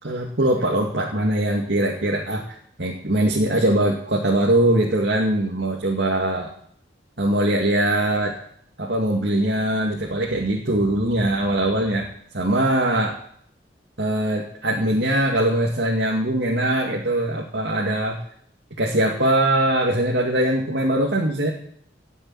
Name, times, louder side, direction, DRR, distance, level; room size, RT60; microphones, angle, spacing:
voice 1, 0.0-2.4 2.8-6.5 7.2-8.4 8.8-12.1 12.3-13.2 14.0-18.2 18.8-21.5, right 1 dB, 65° right, -1 dB, 2.5 m, -21 dB
18.5 x 7.4 x 8.9 m, 0.66 s
head